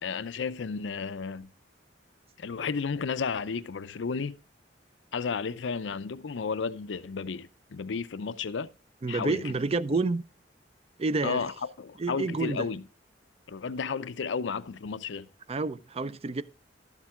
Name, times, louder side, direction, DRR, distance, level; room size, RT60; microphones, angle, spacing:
voice 1, 0.0-1.5 2.4-4.4 5.1-8.7 9.1-9.5 11.2-12.8 13.5-15.3, left 5 dB, 90° left, 0.5 m, -33 dB
voice 2, 9.0-10.2 11.0-11.5 12.0-12.7 15.5-16.4, right 3 dB, 35° right, 0.5 m, -29 dB
12.0 x 7.3 x 3.6 m
head